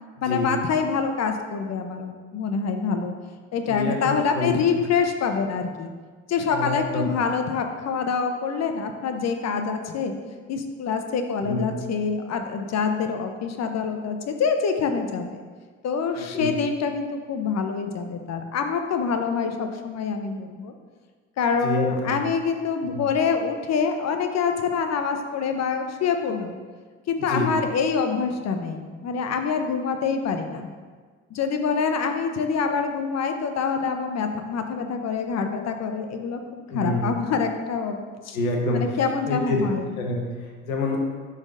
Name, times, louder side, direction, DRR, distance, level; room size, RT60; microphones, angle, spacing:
voice 1, 0.2-3.2 3.5-5.9 6.3-10.1 10.5-15.4 15.8-20.7 21.4-26.6 27.1-30.7 31.3-36.4 36.7-38.0 38.2-38.4 38.7-39.9, left 5 dB, 40° left, 6 dB, 0.9 m, -26 dB
voice 2, 3.7-4.5 6.5-7.1 11.4-11.7 16.2-16.5 21.6-22.2 22.9-23.0 27.3-27.5 36.7-37.1 38.3-39.0 39.3-39.6 40.0-41.0, left 2 dB, 80° left, 1 dB, 1.2 m, -27 dB
10.5 x 4.2 x 2.6 m, 1.5 s
hypercardioid pair, 65°, 41 cm